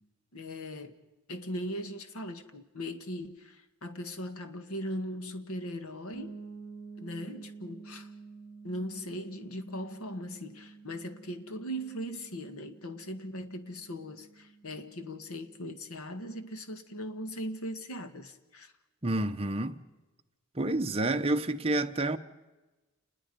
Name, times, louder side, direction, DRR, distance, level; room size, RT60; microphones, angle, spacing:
voice 1, 0.3-1.0 1.3-6.4 7.0-8.1 8.6-18.7, equal, 80° left, 1.7 m, -39 dB
sound 1, 6.1-15.8, right 4 dB, 50° left, 6.9 m, -50 dB
voice 2, 19.0-19.8 20.5-22.2, right 2 dB, 25° right, 0.9 m, -29 dB
29.5 x 20.5 x 5.3 m
head